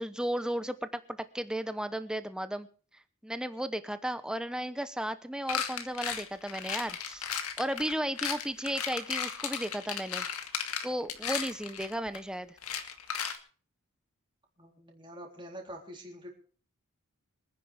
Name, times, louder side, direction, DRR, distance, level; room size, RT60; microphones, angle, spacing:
voice 1, 0.0-2.7 3.2-7.3 7.6-10.3 10.8-12.5, right 1 dB, 5° right, 11 dB, 0.9 m, -34 dB
sound 1, 5.5-12.2 12.6-13.4, left 7 dB, 80° left, 1.8 m, -35 dB
voice 2, 14.6-16.3, equal, 20° right, 0 dB, 3.6 m, -45 dB
25.5 x 9.9 x 3.5 m, 0.41 s
head